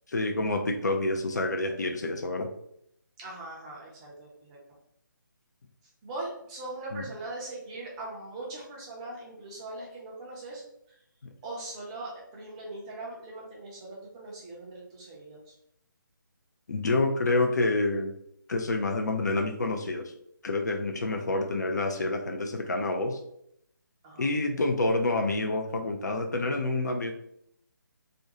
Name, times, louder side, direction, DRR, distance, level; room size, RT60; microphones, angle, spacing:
voice 1, 0.1-2.5 6.9-7.0 16.7-18.1 18.5-20.1 20.4-23.2 24.2-27.1, left 2 dB, 55° left, 4 dB, 0.4 m, -28 dB
voice 2, 3.2-4.6 6.0-10.6 10.9-11.0 11.4-15.5 24.0-24.3, right 2 dB, 15° right, -4 dB, 0.5 m, -40 dB
2.5 x 2.2 x 2.8 m, 0.73 s
figure-of-eight pair, 145°, 11 cm